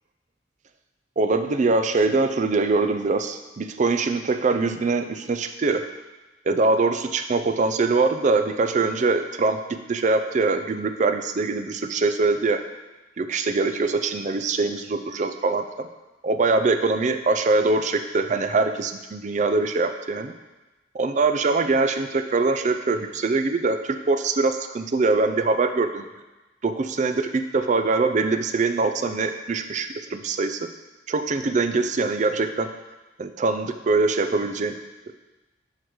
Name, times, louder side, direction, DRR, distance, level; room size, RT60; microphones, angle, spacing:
voice 1, 1.2-5.8 6.5-9.6 9.9-12.6 13.2-15.9 16.2-20.3 20.9-26.1 26.6-30.7 31.1-32.7 33.2-34.8 35.1-35.2, right 3 dB, 40° right, 8 dB, 0.4 m, -23 dB
11.0 x 3.8 x 3.1 m, 1.1 s
head